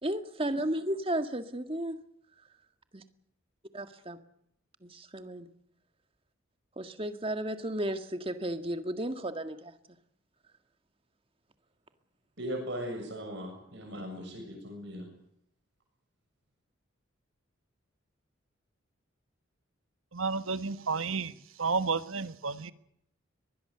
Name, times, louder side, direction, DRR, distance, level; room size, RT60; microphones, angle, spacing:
voice 1, 0.0-2.0 2.9-3.0 3.7-4.2 4.8-5.5 6.7-9.7, right 1 dB, 25° right, 1.8 m, -34 dB
voice 2, 12.4-15.1, equal, 60° right, 6.9 m, -38 dB
voice 3, 20.1-21.3 21.6-22.7, right 4 dB, 90° right, 1.3 m, -31 dB
23.5 x 20.5 x 6.8 m
head